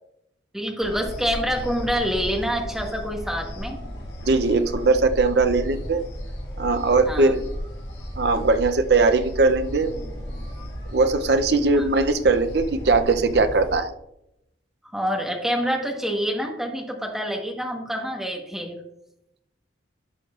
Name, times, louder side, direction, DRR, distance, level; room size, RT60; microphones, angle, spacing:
voice 1, 0.5-3.8 7.1-7.3 11.7-11.9 14.8-18.8, equal, ahead, 1 dB, 1.1 m, -27 dB
sound 1, 0.8-13.7, equal, 65° left, 1.9 m, -34 dB
voice 2, 4.2-6.0 6.6-7.4 8.2-9.9 10.9-13.9, right 3 dB, 60° right, 9 dB, 0.6 m, -20 dB
11.0 x 6.3 x 2.4 m, 0.81 s
head